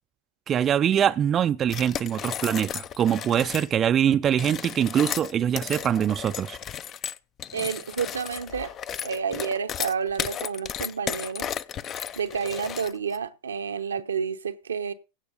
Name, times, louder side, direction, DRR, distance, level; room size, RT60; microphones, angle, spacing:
voice 1, 0.5-6.6, right 9 dB, 30° right, 0.5 m, -23 dB
sound 1, 1.7-3.7 4.3-13.2, left 9 dB, 35° left, 0.6 m, -34 dB
voice 2, 7.5-8.7 9.0-11.5 12.2-14.9, right 6 dB, 80° right, 0.9 m, -30 dB
16.5 x 6.2 x 3.9 m
hypercardioid pair, 90°, 0 cm